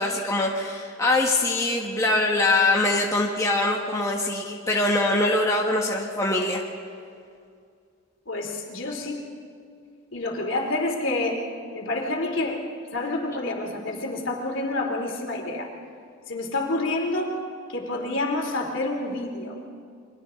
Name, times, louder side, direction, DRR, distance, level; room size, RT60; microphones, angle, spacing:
voice 1, 0.0-6.6, left 2 dB, 15° left, -1 dB, 1.4 m, -23 dB
voice 2, 8.3-9.3 10.1-11.4 11.7-12.6 12.9-15.7 16.3-17.4 17.7-19.5, left 2 dB, 70° left, 1 dB, 3.0 m, -28 dB
30.0 x 23.5 x 3.8 m, 2.3 s
head